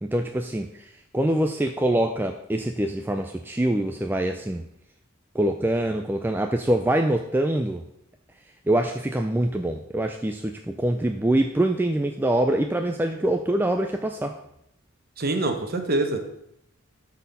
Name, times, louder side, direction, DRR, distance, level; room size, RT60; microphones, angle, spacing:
voice 1, 0.0-4.6 5.3-7.8 8.7-14.4, right 1 dB, 10° right, 5 dB, 0.3 m, -24 dB
voice 2, 15.2-16.2, right 2 dB, 45° right, 5 dB, 1.1 m, -25 dB
12.0 x 4.2 x 5.4 m, 0.80 s
head